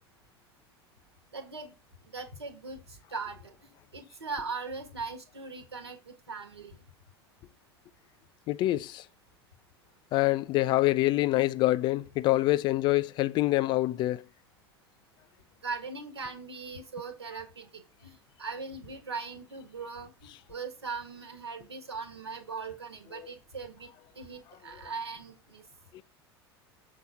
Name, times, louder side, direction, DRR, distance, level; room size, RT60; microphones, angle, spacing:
voice 1, 1.3-1.7 2.1-3.4 3.9-6.8 15.6-18.1 18.4-23.9 24.1-25.6, right 4 dB, 75° right, 1.6 m, -40 dB
voice 2, 8.5-9.0 10.1-14.2 25.9-26.0, left 17 dB, 35° left, 0.4 m, -26 dB
6.9 x 4.0 x 5.5 m
figure-of-eight pair, 80°, 14 cm